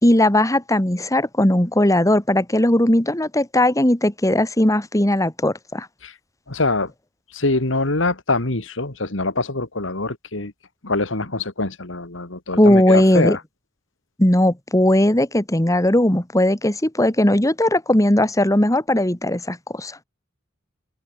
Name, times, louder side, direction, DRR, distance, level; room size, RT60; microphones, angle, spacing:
voice 1, 0.0-5.9 12.6-13.4 14.2-20.0, left 1 dB, 15° left, 2.2 m, -18 dB
voice 2, 6.5-6.9 7.3-10.5 10.8-13.4, left 2 dB, 90° left, 2.5 m, -24 dB
open air
head